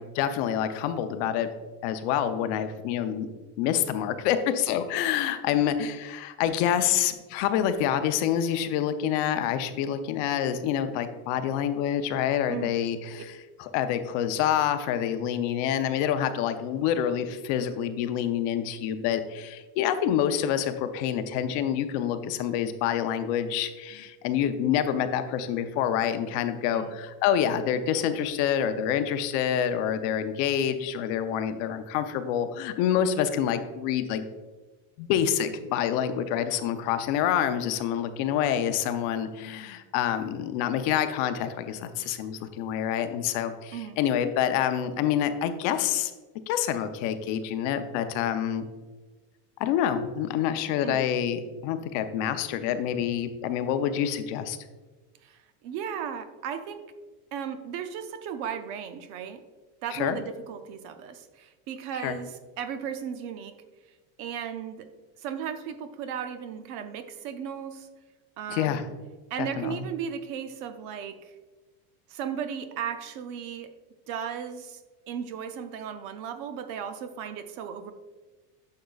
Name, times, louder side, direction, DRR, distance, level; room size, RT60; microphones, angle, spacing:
voice 1, 0.0-1.5 1.8-3.3 3.6-34.3 35.0-46.1 46.5-48.6 49.6-54.6 59.9-60.2 62.0-62.2 68.5-68.8 69.4-69.8, left 9 dB, 55° left, 9 dB, 0.6 m, -27 dB
voice 2, 55.2-56.9 57.3-59.4 59.8-63.5 64.2-64.9 65.2-67.9 68.4-68.9 69.3-71.3 72.1-73.7 74.1-74.8 75.1-77.9, right 8 dB, 45° right, 9 dB, 0.5 m, -36 dB
10.5 x 6.5 x 2.4 m, 1.3 s
cardioid pair, 170°, 46 cm